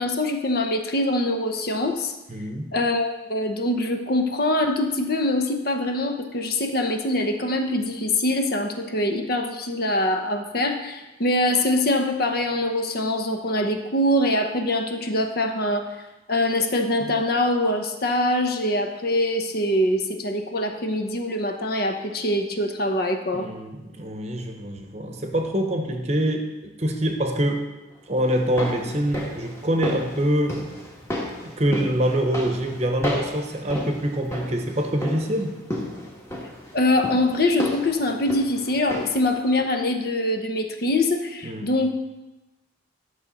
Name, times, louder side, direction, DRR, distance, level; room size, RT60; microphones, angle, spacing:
voice 1, 0.0-2.1 2.7-15.9 16.3-23.5 36.7-41.9, left 1 dB, 50° left, 5 dB, 0.8 m, -24 dB
voice 2, 2.3-2.7 23.3-27.7 28.1-30.7 31.4-35.6 41.4-41.7, right 1 dB, 35° right, 4 dB, 0.9 m, -25 dB
sound 1, 28.3-39.3 39.6-39.7, left 1 dB, 15° left, 1.3 m, -33 dB
11.5 x 6.5 x 4.1 m, 1.1 s
head